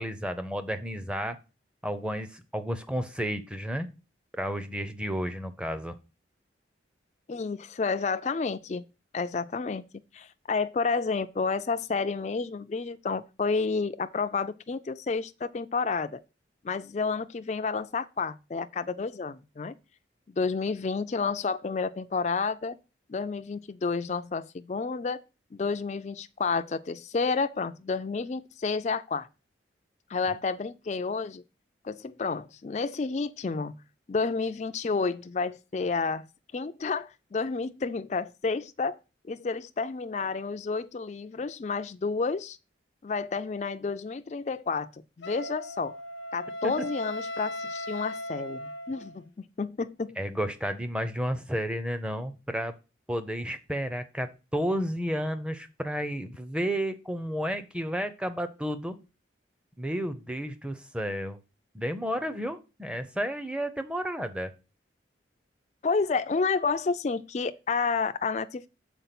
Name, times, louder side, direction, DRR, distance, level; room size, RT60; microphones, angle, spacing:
voice 1, 0.0-1.4 1.8-3.9 4.4-5.9 46.6-46.9 50.2-52.7 53.1-59.0 59.8-61.4 61.7-64.5, equal, 5° right, 0.6 m, -32 dB
voice 2, 7.3-8.8 9.1-9.8 10.1-16.2 16.6-19.7 20.4-22.8 23.1-25.2 25.5-29.3 30.1-31.4 31.8-33.7 34.1-36.3 36.5-39.0 39.3-42.6 43.0-44.9 45.2-45.9 46.3-49.2 49.6-50.2 65.8-68.7, left 4 dB, 35° left, 0.4 m, -30 dB
Wind instrument woodwind instrument, 45.2-49.2, left 1 dB, 85° left, 0.6 m, -37 dB
6.8 x 4.6 x 5.8 m
head